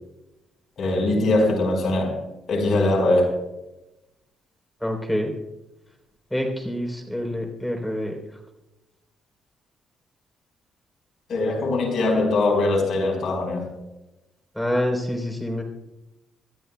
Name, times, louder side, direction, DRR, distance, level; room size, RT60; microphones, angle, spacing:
voice 1, 0.8-2.2 2.5-3.3 11.3-13.7, left 2 dB, 60° left, 1 dB, 4.8 m, -21 dB
voice 2, 4.8-5.3 6.3-8.2 14.6-15.6, equal, 5° left, 2 dB, 3.7 m, -26 dB
26.0 x 13.5 x 2.3 m, 0.96 s
cardioid pair, 90°, 0 cm